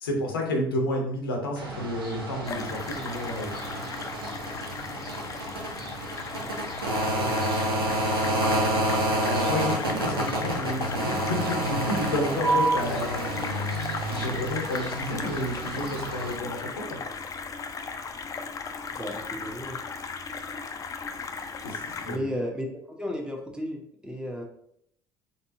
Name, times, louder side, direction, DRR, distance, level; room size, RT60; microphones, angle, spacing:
voice 1, 0.0-3.5 9.2-13.3 14.1-17.0 21.6-22.3, left 1 dB, 80° left, 1 dB, 0.7 m, -31 dB
sound 1, 1.6-16.3, right 1 dB, 85° right, 0.8 m, -29 dB
sound 2, 2.5-22.2, left 5 dB, 30° left, 0.5 m, -36 dB
voice 2, 7.1-7.8 12.9-13.0 18.9-19.8 22.0-24.4, equal, 5° right, 1 dB, 1.0 m, -34 dB
4.1 x 3.6 x 2.6 m, 0.69 s
figure-of-eight pair, 60°, 12 cm